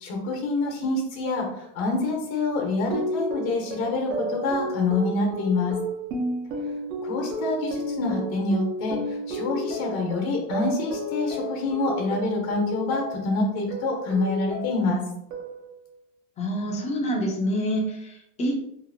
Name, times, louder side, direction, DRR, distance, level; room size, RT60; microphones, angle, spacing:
voice 1, 0.0-5.7 7.0-15.0, left 3 dB, 75° left, 0 dB, 1.0 m, -26 dB
sound 1, 2.9-13.3 13.7-14.9 15.3-15.8, equal, 90° right, 0.9 m, -32 dB
voice 2, 16.4-18.5, equal, 20° left, 1 dB, 0.3 m, -27 dB
2.8 x 2.4 x 2.6 m, 0.78 s
supercardioid pair, 140°, 42 cm